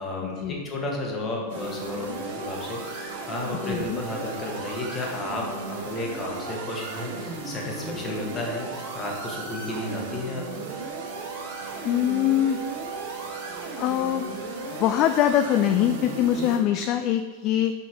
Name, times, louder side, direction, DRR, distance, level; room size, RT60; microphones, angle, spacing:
voice 1, 0.0-10.7, left 2 dB, 20° left, -1 dB, 1.7 m, -33 dB
sound 1, 1.5-16.6, right 3 dB, 50° right, 1.5 m, -35 dB
voice 2, 3.6-4.0 11.8-12.6 13.8-14.2 14.8-17.7, left 11 dB, 40° left, 9 dB, 0.3 m, -23 dB
6.1 x 5.7 x 4.5 m, 1.5 s
figure-of-eight pair, 90°, 0 cm